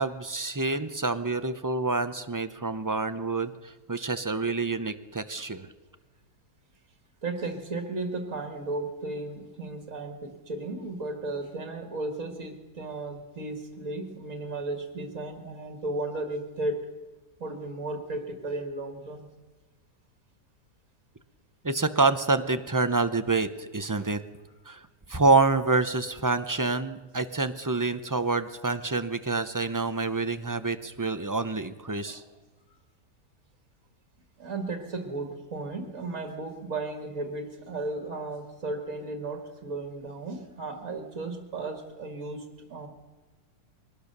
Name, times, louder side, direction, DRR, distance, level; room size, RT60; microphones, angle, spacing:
voice 1, 0.0-5.7 21.6-24.2 24.7-32.2, right 3 dB, 30° right, 11 dB, 0.3 m, -27 dB
voice 2, 7.2-16.9 17.4-19.3 32.0-32.3 34.4-42.9, right 2 dB, 55° right, 5 dB, 2.2 m, -35 dB
22.5 x 19.0 x 6.7 m, 1.3 s
omnidirectional pair, 1.7 m